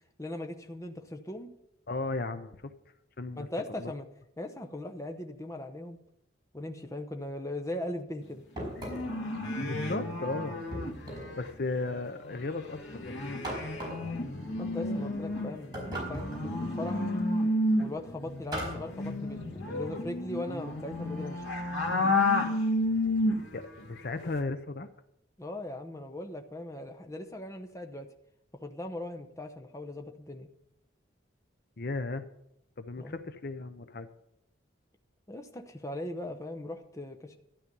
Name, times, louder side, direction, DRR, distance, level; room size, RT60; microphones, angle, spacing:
voice 1, 0.2-1.5 3.3-4.0 4.4-6.0 6.5-8.4 14.6-17.1 17.8-21.5 25.4-28.1 28.6-30.5 33.0-33.2 35.3-37.4, left 1 dB, 15° left, 4 dB, 0.8 m, -39 dB
voice 2, 1.9-2.7 3.2-3.5 3.8-3.9 9.7-10.5 11.0-13.1 23.5-24.9 31.8-32.3 32.8-34.1, left 3 dB, 50° left, 10 dB, 0.7 m, -35 dB
sound 1, 8.6-9.2 10.7-11.4 13.4-14.1 15.7-16.5 18.5-18.9, right 1 dB, 20° right, 4.8 m, -38 dB
sound 2, 8.7-11.5 11.8-11.9 12.2-23.7 24.0-24.4, left 1 dB, 85° left, 2.1 m, -31 dB
12.5 x 10.5 x 5.4 m, 0.78 s
head